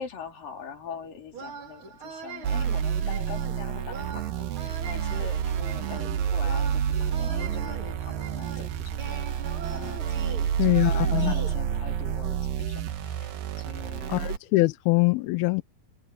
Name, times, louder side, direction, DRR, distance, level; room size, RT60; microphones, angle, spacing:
voice 1, 0.0-4.3 4.6-9.2 9.7-13.3 13.6-14.3, left 7 dB, 60° left, 5.5 m, -42 dB
sound 1, 1.3-11.5, right 5 dB, 35° right, 3.0 m, -42 dB
sound 2, 2.4-14.4, right 8 dB, 70° right, 3.2 m, -29 dB
sound 3, 4.0-14.0, right 17 dB, 85° right, 1.9 m, -37 dB
voice 2, 10.6-11.3 14.1-15.6, left 23 dB, 85° left, 2.5 m, -23 dB
omnidirectional pair, 4.4 m